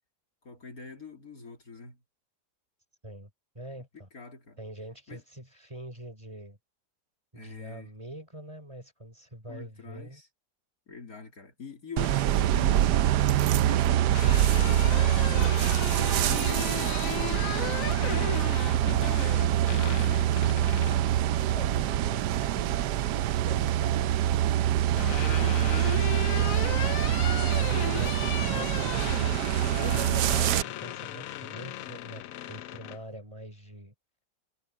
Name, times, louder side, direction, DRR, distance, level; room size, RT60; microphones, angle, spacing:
voice 1, 0.4-2.0 3.9-4.6 5.1-5.2 7.3-7.9 9.5-10.3 10.9-13.0 13.5-14.1 14.5-15.8 16.2-20.2 29.8-30.2, left 4 dB, 50° left, 3.1 m, -44 dB
voice 2, 3.5-4.1 4.6-6.6 7.3-10.2 21.4-24.5 29.4-33.9, right 1 dB, 15° right, 4.4 m, -44 dB
sound 1, 12.0-30.6, right 12 dB, 70° right, 1.1 m, -25 dB
sound 2, 14.1-21.1 22.6-23.2 24.5-33.0, left 13 dB, 70° left, 0.8 m, -37 dB
omnidirectional pair, 1.9 m